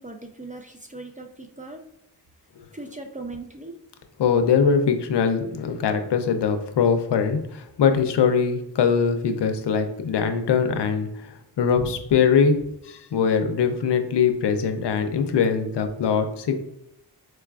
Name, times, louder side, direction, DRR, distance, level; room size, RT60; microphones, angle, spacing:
voice 1, 0.0-1.9 2.7-3.8, right 2 dB, 20° right, 4 dB, 0.3 m, -39 dB
voice 2, 4.2-16.5, left 6 dB, 80° left, 7 dB, 0.5 m, -22 dB
4.5 x 2.3 x 2.3 m, 0.81 s
wide cardioid pair, 70°, 41 cm